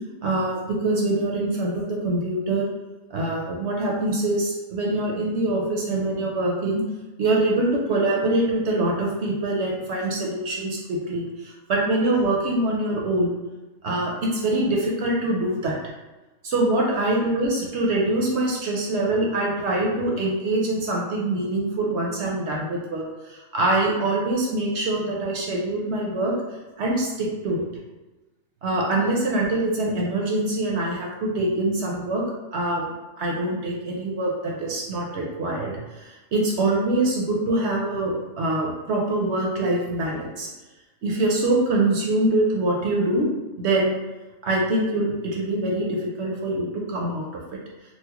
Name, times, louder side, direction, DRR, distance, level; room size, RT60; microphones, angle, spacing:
voice 1, 0.2-2.7 3.1-6.8 7.2-13.3 13.8-15.7 16.4-26.3 26.8-27.6 28.6-32.2 32.5-32.8 33.2-40.5 41.0-43.3 43.6-43.9 44.4-47.2, right 2 dB, 60° right, -2 dB, 0.8 m, -24 dB
4.2 x 2.0 x 2.9 m, 1.1 s
omnidirectional pair, 1.4 m